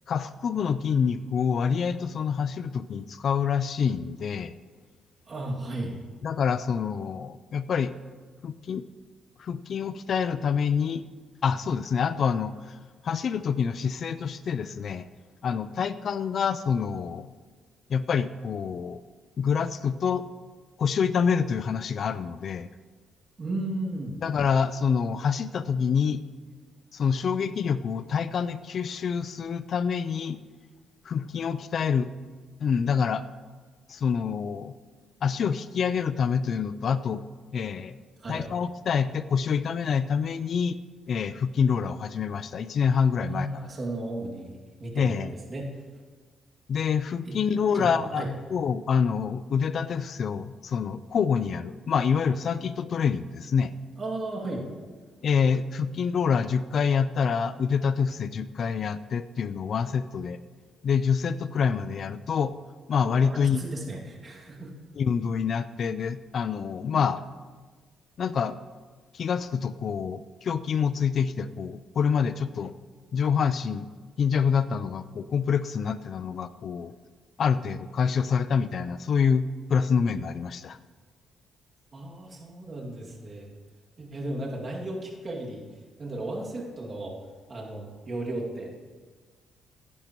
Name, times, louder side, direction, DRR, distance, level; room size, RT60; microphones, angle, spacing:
voice 1, 0.1-4.5 6.2-7.9 8.4-8.8 9.4-11.0 11.4-12.8 13.0-15.0 15.4-17.3 17.9-19.0 19.4-20.2 20.8-22.7 24.2-26.2 26.9-30.4 31.1-32.1 32.6-33.2 33.9-34.7 35.2-37.2 37.5-38.0 38.3-40.8 41.1-43.5 44.9-45.3 46.7-53.7 55.2-60.4 60.8-62.5 62.9-63.6 65.0-67.2 68.2-68.6 69.1-72.7 73.1-73.9 74.2-76.9 77.4-80.8, left 6 dB, 55° left, 14 dB, 0.4 m, -26 dB
voice 2, 5.3-5.9 23.4-24.2 38.2-38.4 43.2-45.7 47.3-47.4 47.7-48.3 54.0-54.6 63.0-64.7 66.9-67.0 81.9-83.5 84.0-85.6 86.0-87.2 87.5-88.8, right 2 dB, 40° right, -2 dB, 2.3 m, -35 dB
15.5 x 10.5 x 3.0 m, 1.4 s
cardioid pair, 90°, 0 cm